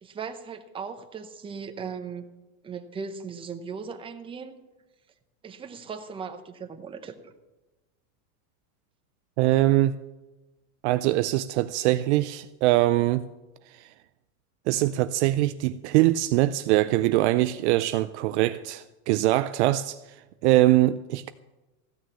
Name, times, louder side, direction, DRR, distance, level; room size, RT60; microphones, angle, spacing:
voice 1, 0.0-2.2 2.6-4.6 5.4-7.3, right 5 dB, 10° right, 0.7 m, -38 dB
voice 2, 9.4-10.0 10.8-13.3 13.8-13.9 14.7-20.0 20.4-21.3, right 16 dB, 50° right, 0.5 m, -22 dB
14.5 x 6.3 x 8.3 m
supercardioid pair, 145°, 45 cm